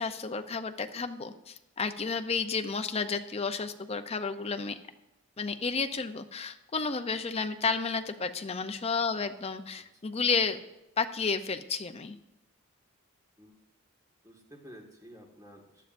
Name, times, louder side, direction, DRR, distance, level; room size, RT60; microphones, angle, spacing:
voice 1, 0.0-4.8 5.4-10.6 11.0-12.2, left 5 dB, 30° left, 8 dB, 0.5 m, -31 dB
voice 2, 14.2-15.8, equal, 15° right, 0 dB, 1.7 m, -51 dB
16.0 x 11.5 x 2.6 m, 0.90 s
head